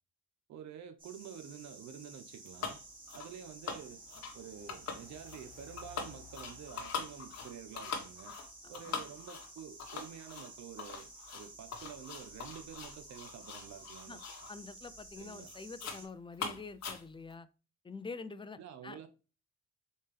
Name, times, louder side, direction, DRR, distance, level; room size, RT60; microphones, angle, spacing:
voice 1, 0.5-2.8 3.1-4.0 4.3-8.4 8.7-14.2 15.2-15.5 16.4-16.6 18.6-19.1, right 8 dB, 65° right, 0.6 m, -49 dB
sound 1, 1.0-16.0, right 1 dB, 30° right, 2.3 m, -53 dB
sound 2, 2.6-2.8 3.1-3.3 3.7-4.4 4.7-5.4 5.8-14.5 14.9-15.1 15.5-16.0 16.3-17.3, left 5 dB, 60° left, 1.2 m, -43 dB
voice 2, 8.6-8.9 14.1-14.2 14.5-17.5 17.8-19.0, left 4 dB, 15° left, 0.4 m, -46 dB
4.1 x 3.6 x 3.2 m
cardioid pair, 90°, 30 cm